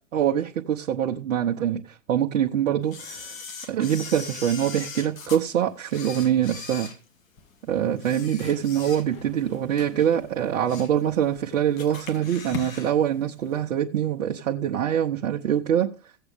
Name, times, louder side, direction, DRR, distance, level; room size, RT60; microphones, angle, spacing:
voice 1, 0.1-1.8 2.1-3.4 3.7-6.9 7.7-15.9, right 10 dB, 65° right, 1.1 m, -24 dB
Camera, 2.9-5.4 5.9-7.5 8.0-9.4 9.7-9.9 10.4-11.0 11.3-11.4 11.8-12.9 13.2-13.3, left 5 dB, 70° left, 2.2 m, -40 dB
sound 1, 7.4-12.6, left 8 dB, 30° left, 2.6 m, -44 dB
16.0 x 7.9 x 3.6 m
hypercardioid pair, 115°, 42 cm